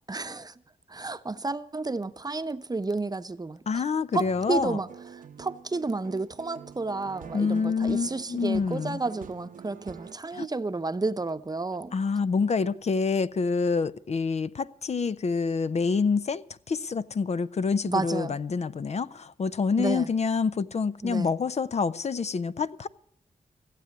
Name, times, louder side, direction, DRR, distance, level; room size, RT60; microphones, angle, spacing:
voice 1, 0.1-0.5 0.9-3.8 4.1-4.9 5.1-11.9 17.9-18.4 19.8-20.1 21.0-21.3, right 3 dB, 30° right, 0.8 m, -31 dB
voice 2, 3.7-4.8 7.3-9.0 10.3-10.5 11.9-22.9, left 5 dB, 50° left, 0.6 m, -27 dB
sound 1, 4.2-10.2, right 7 dB, 75° right, 0.8 m, -46 dB
16.0 x 7.7 x 9.5 m
cardioid pair, 50°, 14 cm